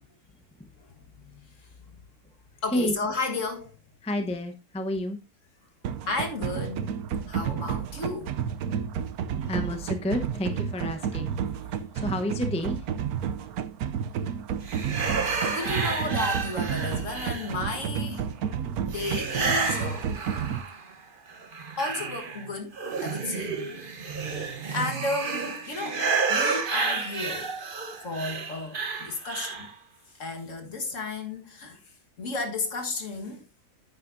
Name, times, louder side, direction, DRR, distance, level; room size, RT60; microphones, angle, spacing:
voice 1, 0.8-1.7 2.6-3.7 6.1-6.9 7.3-8.4 15.4-18.3 18.8-20.1 20.5-20.6 21.8-22.8 23.0-23.6 24.2-27.5 28.0-29.7 30.1-31.8 32.2-33.4, left 3 dB, 55° left, 1.9 m, -33 dB
voice 2, 4.0-5.2 9.5-11.4 11.9-12.9, left 1 dB, 5° left, 0.8 m, -30 dB
sound 1, 5.8-20.6, right 8 dB, 80° right, 1.2 m, -31 dB
sound 2, 14.7-17.8 18.9-20.9 21.3-29.7, right 4 dB, 40° right, 1.2 m, -31 dB
9.5 x 9.2 x 2.6 m
omnidirectional pair, 1.6 m